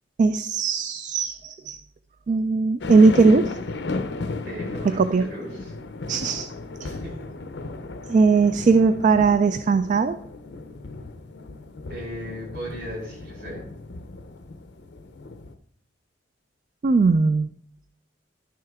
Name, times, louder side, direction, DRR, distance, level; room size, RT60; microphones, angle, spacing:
voice 1, 0.2-1.8 2.3-3.5 4.8-5.3 6.1-6.5 6.8-6.9 8.1-10.2 16.8-17.5, right 4 dB, 45° right, 11 dB, 0.3 m, -19 dB
sound 1, 2.8-15.5, left 2 dB, 70° left, 0.6 m, -35 dB
voice 2, 4.4-5.7 6.8-7.2 11.9-13.6, equal, 60° right, -3 dB, 4.2 m, -37 dB
11.0 x 6.5 x 3.5 m, 0.68 s
head